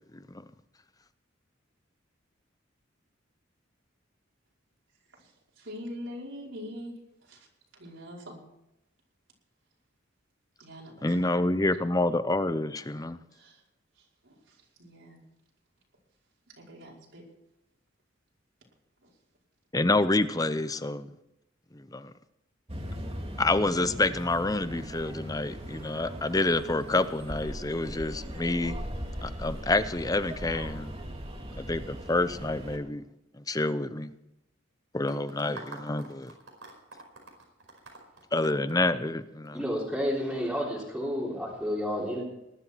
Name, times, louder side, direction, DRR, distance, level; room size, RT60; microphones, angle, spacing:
voice 1, 5.6-6.9 7.3-7.4 7.7-8.4 10.6-11.4 13.3-13.6 14.2-15.2 16.6-17.2 19.0-19.1, equal, 75° right, -3 dB, 5.2 m, -43 dB
voice 2, 11.0-13.2 19.7-21.1 21.7-22.1 23.4-28.8 29.2-30.9 31.5-33.0 33.4-34.1 34.9-36.3 38.3-39.6, left 2 dB, 20° left, 13 dB, 0.7 m, -28 dB
sound 1, 22.7-32.8, equal, 30° right, 2.3 m, -39 dB
sound 2, 35.1-39.5, right 3 dB, 90° right, 5.1 m, -47 dB
voice 3, 39.5-42.2, equal, ahead, -7 dB, 3.7 m, -30 dB
20.0 x 12.0 x 4.7 m, 0.87 s
head